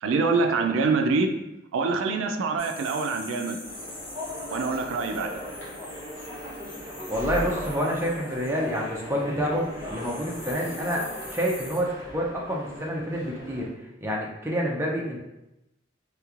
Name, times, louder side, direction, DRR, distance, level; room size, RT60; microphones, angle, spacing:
voice 1, 0.0-1.4 1.7-3.6 4.5-5.4, right 4 dB, 80° right, 6 dB, 0.3 m, -25 dB
sound 1, 2.6-9.3 9.5-11.8, left 1 dB, 70° left, 1.3 m, -44 dB
sound 2, 3.6-13.7, left 1 dB, 85° left, 1.3 m, -38 dB
voice 2, 7.1-13.7 14.0-15.2, equal, 10° right, -2 dB, 0.4 m, -28 dB
3.3 x 3.0 x 2.4 m, 0.92 s
head